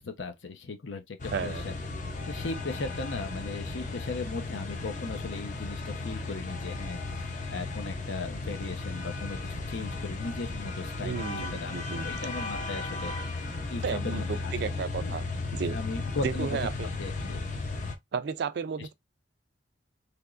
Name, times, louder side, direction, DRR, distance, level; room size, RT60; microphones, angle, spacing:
voice 1, 0.0-1.7 2.3-14.5 15.0-15.2 15.7-16.7 17.0-17.4 18.8-18.9, left 3 dB, 80° left, 0.7 m, -38 dB
A nice day for a turkish wedding, 1.2-17.9, left 3 dB, 40° left, 0.6 m, -35 dB
voice 2, 1.3-1.6 11.0-12.1 13.8-15.2 15.5-15.8 16.2-16.9 18.1-18.9, right 6 dB, 60° right, 0.3 m, -33 dB
3.4 x 3.0 x 2.4 m
head